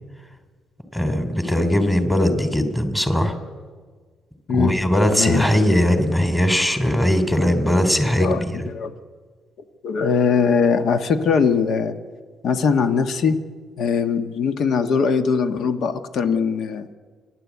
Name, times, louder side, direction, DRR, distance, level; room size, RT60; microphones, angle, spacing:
voice 1, 0.9-3.4 4.5-8.7, equal, 10° left, 8 dB, 3.1 m, -19 dB
voice 2, 5.1-5.4 8.2-8.9 9.8-11.9 12.4-13.4 13.8-16.9, left 5 dB, 70° left, 8 dB, 1.4 m, -21 dB
29.5 x 11.5 x 8.3 m, 1.5 s
cardioid pair, 90°, 0 cm